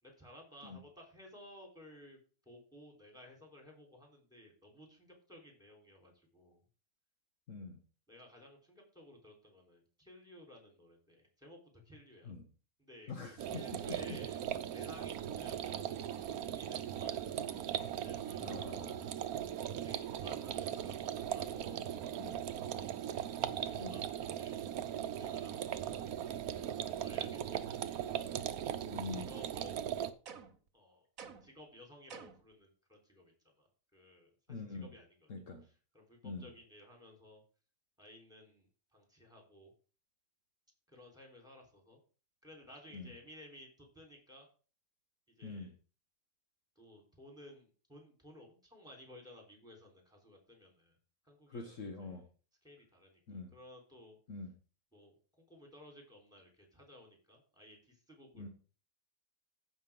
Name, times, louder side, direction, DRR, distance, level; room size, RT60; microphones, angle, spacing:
voice 1, 0.0-2.2 2.5-6.6 8.1-11.6 11.8-12.3 12.8-14.4 14.7-15.9 16.5-17.3 17.9-18.6 19.8-22.9 23.7-24.6 25.2-25.7 26.5-27.8 29.1-29.9 30.7-35.3 35.6-37.4 38.0-39.7 40.9-42.0 42.4-44.5 45.4-45.7 46.8-51.0 51.2-52.2 52.6-54.2 54.9-58.5, left 1 dB, 5° right, 0 dB, 3.7 m, -57 dB
voice 2, 7.5-7.8 12.2-12.4 13.1-13.6 14.1-14.2 18.4-19.1 22.2-22.4 23.8-24.0 28.8-29.3 34.5-34.9 35.3-35.6 36.2-36.5 42.9-43.1 45.4-45.7 51.5-52.2 53.3-53.5 54.3-54.5 58.4-58.5, left 4 dB, 60° left, 5 dB, 1.5 m, -44 dB
sound 1, 13.4-30.1, right 10 dB, 85° right, 1.2 m, -39 dB
sound 2, 30.3-30.7 31.2-31.6 32.1-32.5, right 6 dB, 70° right, 1.4 m, -51 dB
14.5 x 5.8 x 3.7 m, 0.37 s
omnidirectional pair, 1.5 m